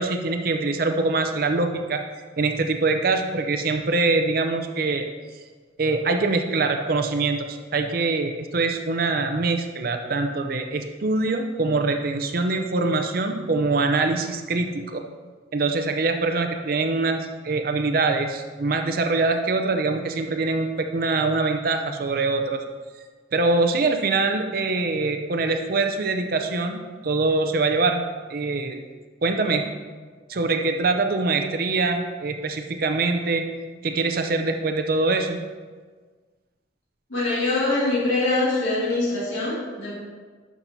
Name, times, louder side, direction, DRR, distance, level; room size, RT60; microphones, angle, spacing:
voice 1, 0.0-2.0 2.4-5.1 5.8-15.0 15.5-22.6 23.3-28.0 28.3-28.8 29.2-29.7 30.3-33.5 33.8-35.4, right 3 dB, 50° right, 6 dB, 0.5 m, -24 dB
voice 2, 37.1-40.0, left 2 dB, 80° left, -7 dB, 2.2 m, -24 dB
11.5 x 6.0 x 2.7 m, 1.4 s
head